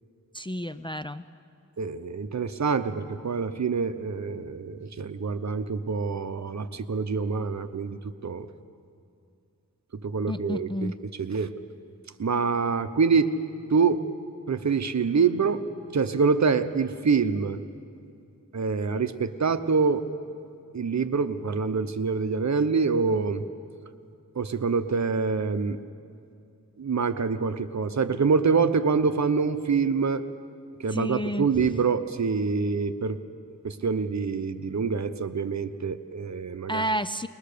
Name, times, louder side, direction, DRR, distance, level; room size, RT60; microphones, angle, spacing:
voice 1, 0.3-1.2 10.3-10.9 30.9-31.5 36.7-37.3, equal, 15° left, 10 dB, 0.4 m, -30 dB
voice 2, 1.8-8.5 10.0-10.9 11.2-11.5 12.2-13.3 13.7-14.0 14.5-15.6 15.9-17.6 18.5-20.1 20.7-23.4 24.3-25.8 26.8-30.2 30.8-33.2 33.6-36.9, right 5 dB, 55° right, 10 dB, 0.9 m, -26 dB
21.5 x 20.5 x 6.8 m, 2.5 s
wide cardioid pair, 105°, 33 cm